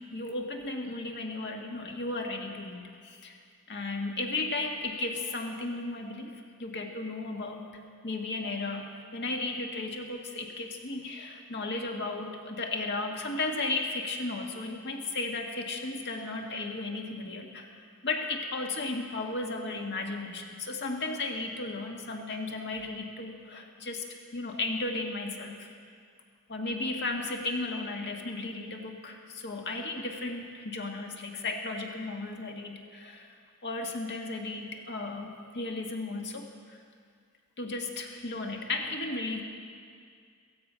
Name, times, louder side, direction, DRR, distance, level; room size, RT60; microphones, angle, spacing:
voice 1, 0.0-3.4 3.7-7.6 8.0-24.0 24.3-25.7 26.5-33.4 33.6-36.8 37.6-39.4, left 2 dB, 50° left, 2 dB, 1.6 m, -35 dB
15.5 x 15.5 x 5.6 m, 2.2 s
head